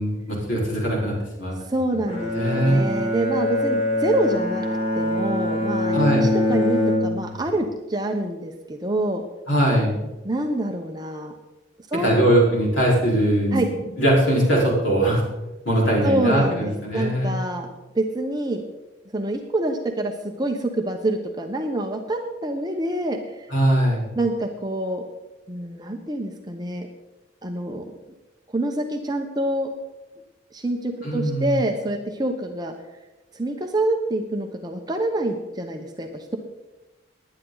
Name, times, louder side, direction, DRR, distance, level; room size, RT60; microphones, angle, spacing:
voice 1, 0.0-1.6 2.3-2.9 5.9-6.3 9.5-9.9 12.0-15.2 15.6-17.3 23.5-24.0 31.0-31.5, right 1 dB, 75° left, -4 dB, 4.6 m, -21 dB
voice 2, 1.7-4.7 4.9-9.2 10.2-11.3 11.9-12.4 13.5-13.7 16.0-17.7 17.9-18.6 19.1-23.5 24.2-25.0 25.5-26.9 27.4-27.9 28.5-29.7 30.5-32.7 33.3-36.4, right 1 dB, 20° right, 3 dB, 0.9 m, -26 dB
Bowed string instrument, 2.1-7.5, left 1 dB, 30° left, 2.9 m, -23 dB
19.0 x 10.5 x 4.0 m, 1.1 s
head